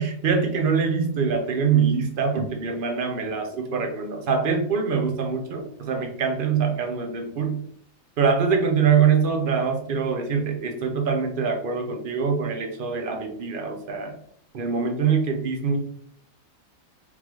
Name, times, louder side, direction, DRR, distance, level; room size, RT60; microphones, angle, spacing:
voice 1, 0.0-7.6 8.2-14.1 14.5-15.8, right 6 dB, 45° right, 3 dB, 0.8 m, -24 dB
3.8 x 3.6 x 3.1 m, 0.64 s
omnidirectional pair, 1.4 m